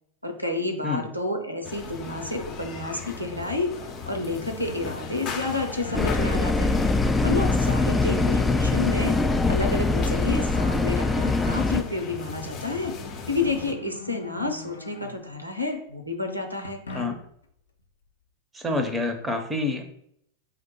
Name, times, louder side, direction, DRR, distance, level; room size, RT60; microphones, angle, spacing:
voice 1, 0.2-3.7 4.1-6.9 7.2-9.2 9.5-12.9 13.3-16.8, left 2 dB, 85° right, 6 dB, 0.6 m, -30 dB
sound 1, 1.6-13.7, left 6 dB, 35° left, 0.7 m, -37 dB
sound 2, 4.6-5.3 5.6-6.4 7.1-7.2 9.2-9.3 9.6-15.4 16.6-17.4, left 2 dB, 70° left, 0.6 m, -42 dB
sound 3, 5.9-11.8, left 3 dB, 10° left, 0.3 m, -23 dB
voice 2, 7.9-8.2 16.9-17.2 18.5-19.8, left 2 dB, 10° right, 6 dB, 0.7 m, -28 dB
4.9 x 2.1 x 4.3 m, 0.69 s
figure-of-eight pair, 90°, 0 cm